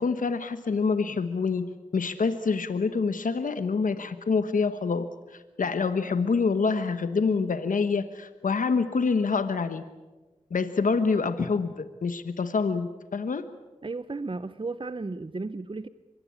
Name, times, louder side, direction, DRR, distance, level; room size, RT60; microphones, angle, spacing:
voice 1, 0.0-9.8 10.5-13.4, left 4 dB, 90° left, 10 dB, 1.1 m, -26 dB
voice 2, 13.8-15.9, right 3 dB, 40° right, 14 dB, 0.8 m, -34 dB
25.0 x 20.5 x 8.5 m, 1.2 s
cardioid pair, 45°, 13 cm